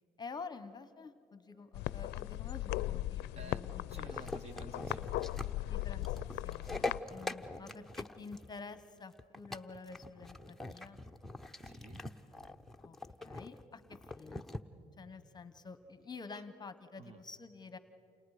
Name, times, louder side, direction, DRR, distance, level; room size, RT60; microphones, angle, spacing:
voice 1, 0.2-4.1 5.6-11.0 12.8-14.4 15.0-17.8, left 4 dB, 25° left, 11 dB, 1.1 m, -49 dB
sound 1, 1.5-7.4, equal, 20° right, 5.7 m, -70 dB
sound 2, 1.7-7.0, left 16 dB, 85° left, 0.5 m, -38 dB
voice 2, 3.9-5.1 6.8-6.9 7.5-7.8 11.6-12.0 16.3-16.4 17.0-17.2, right 3 dB, 40° right, 9 dB, 1.5 m, -52 dB
sound 3, 4.0-14.6, left 2 dB, ahead, 0.8 m, -43 dB
29.5 x 28.5 x 5.0 m, 2.4 s
cardioid pair, 110°, 17 cm